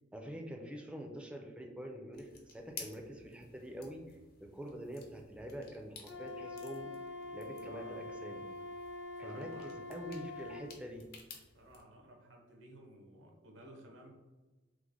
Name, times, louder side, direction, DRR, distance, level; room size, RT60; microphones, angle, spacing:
voice 1, 0.1-4.0 4.4-7.0 7.3-8.4 9.2-11.0, equal, 5° right, 2 dB, 0.3 m, -45 dB
sound 1, 2.1-11.8, left 5 dB, 55° left, 0.6 m, -55 dB
Wind instrument woodwind instrument, 6.0-10.7, left 2 dB, 80° left, 0.8 m, -45 dB
voice 2, 7.6-8.1 9.2-10.1 11.5-14.1, right 1 dB, 85° right, 1 dB, 0.7 m, -56 dB
3.1 x 2.1 x 3.5 m, 1.2 s
head